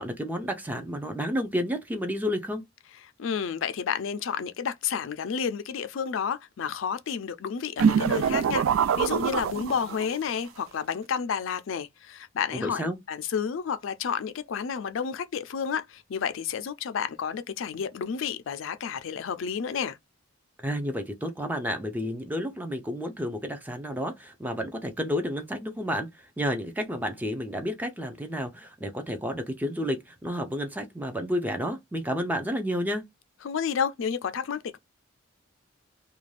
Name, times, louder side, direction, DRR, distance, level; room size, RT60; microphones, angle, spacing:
voice 1, 0.0-2.6 12.5-13.0 20.6-33.0, equal, 10° right, 0.4 m, -31 dB
voice 2, 3.2-20.0 33.4-34.8, left 7 dB, 70° left, 0.4 m, -31 dB
sound 1, 7.8-10.2, right 7 dB, 80° right, 0.3 m, -24 dB
2.5 x 2.2 x 3.1 m
head